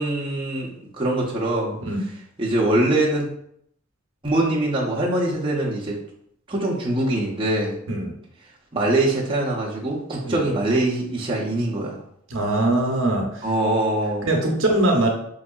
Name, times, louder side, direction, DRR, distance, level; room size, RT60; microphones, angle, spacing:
voice 1, 0.0-1.8 2.4-3.3 4.2-6.0 6.5-7.8 8.7-12.0 13.4-14.3, right 1 dB, 25° right, -4 dB, 0.7 m, -23 dB
voice 2, 12.3-13.4 14.2-15.1, right 1 dB, 70° right, 0 dB, 0.7 m, -21 dB
4.6 x 2.6 x 2.3 m, 0.71 s
head